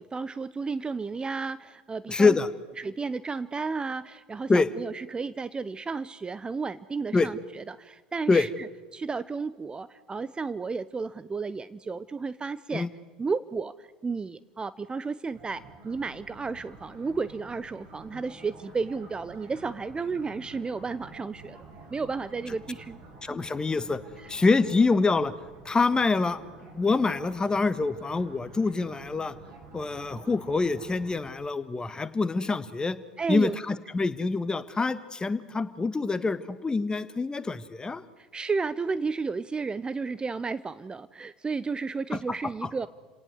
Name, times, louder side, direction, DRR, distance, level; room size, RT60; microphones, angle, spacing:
voice 1, 0.0-2.4 2.8-12.9 13.2-23.0 23.3-23.4 24.2-24.3 33.2-33.6 38.2-42.9, right 4 dB, 20° right, 16 dB, 0.7 m, -33 dB
voice 2, 2.1-2.5 4.5-4.7 7.1-7.3 8.3-8.5 12.7-12.9 23.2-24.0 24.3-25.3 25.6-26.4 26.7-29.3 29.7-33.0 33.3-38.0 42.1-42.2, left 3 dB, 20° left, 13 dB, 1.5 m, -25 dB
sound 1, 15.3-31.3, right 2 dB, 55° right, 7.7 m, -49 dB
29.5 x 18.0 x 8.1 m, 1.3 s
hypercardioid pair, 75°, 5 cm